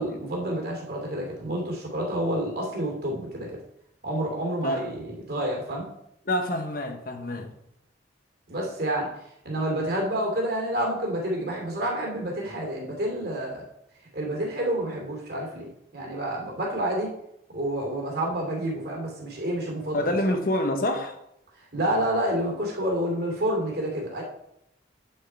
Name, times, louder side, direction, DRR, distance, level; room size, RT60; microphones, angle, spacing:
voice 1, 0.0-3.6 4.0-5.9 8.5-9.1 9.4-13.6 14.1-15.7 15.9-17.1 17.5-20.3 21.5-24.2, right 1 dB, 55° right, -1 dB, 2.8 m, -29 dB
voice 2, 6.3-7.5 19.9-21.2, left 1 dB, 45° left, 5 dB, 1.0 m, -26 dB
9.2 x 6.5 x 4.5 m, 0.79 s
head